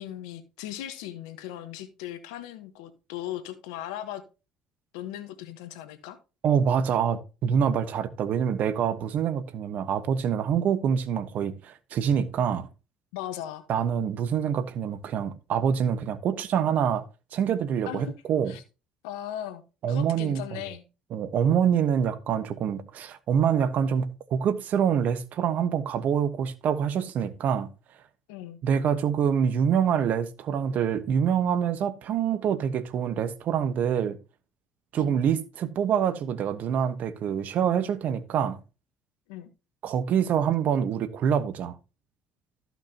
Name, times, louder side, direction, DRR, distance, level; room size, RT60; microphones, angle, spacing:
voice 1, 0.0-4.2 4.9-6.2 13.1-13.6 17.9-18.1 18.5-18.6 19.0-19.6 19.9-20.8 28.3-28.6 35.0-35.2 39.3-39.5, left 12 dB, 85° left, 1.2 m, -38 dB
voice 2, 6.4-12.7 13.7-17.0 17.3-18.5 19.8-20.6 21.1-27.7 28.6-34.2 34.9-38.6 39.8-41.8, right 8 dB, 60° right, 1.2 m, -26 dB
14.0 x 5.9 x 2.9 m
hypercardioid pair, 65°, 3 cm